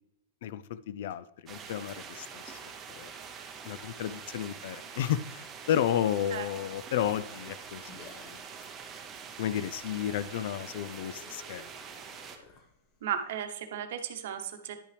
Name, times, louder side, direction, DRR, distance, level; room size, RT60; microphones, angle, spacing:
voice 1, 0.4-2.6 2.9-3.1 3.6-8.4 9.4-11.7, left 10 dB, 55° left, 16 dB, 0.4 m, -32 dB
sound 1, 1.5-12.4, right 6 dB, 20° right, 0.7 m, -45 dB
sound 2, 7.7-13.4, left 4 dB, 30° left, 1.0 m, -56 dB
voice 2, 13.0-14.9, right 9 dB, 65° right, 7 dB, 0.9 m, -35 dB
10.5 x 5.5 x 3.3 m, 0.79 s
supercardioid pair, 160°, 0 cm